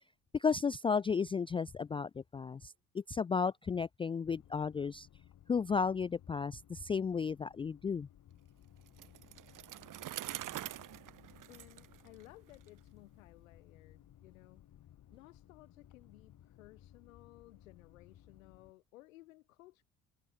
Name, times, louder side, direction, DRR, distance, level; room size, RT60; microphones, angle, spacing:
voice 1, 0.3-5.1 5.5-8.1, left 5 dB, 15° left, 0.4 m, -33 dB
sound 1, 4.2-18.7, left 11 dB, 50° left, 4.7 m, -60 dB
Bicycle, 8.9-12.7, right 13 dB, 50° right, 2.2 m, -45 dB
voice 2, 11.5-14.7 15.1-19.8, left 18 dB, 70° left, 4.3 m, -58 dB
figure-of-eight pair, 50°, 41 cm